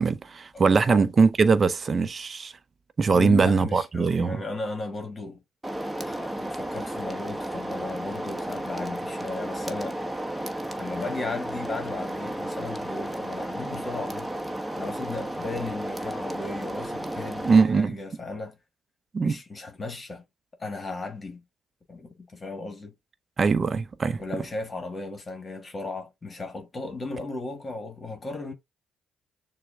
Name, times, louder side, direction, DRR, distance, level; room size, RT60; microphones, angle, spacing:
voice 1, 0.0-2.5 3.0-4.4 17.5-18.0 19.1-19.4 23.4-24.2, right 4 dB, 40° right, 0.6 m, -21 dB
voice 2, 0.5-1.0 3.1-5.4 6.0-10.0 10.8-14.3 14.7-18.6 19.2-20.2 20.6-21.4 21.9-22.9 24.2-28.5, left 3 dB, 35° left, 1.5 m, -35 dB
sound 1, 5.6-17.6, right 1 dB, 10° right, 1.0 m, -33 dB
6.7 x 2.2 x 3.6 m
hypercardioid pair, 55°, 0 cm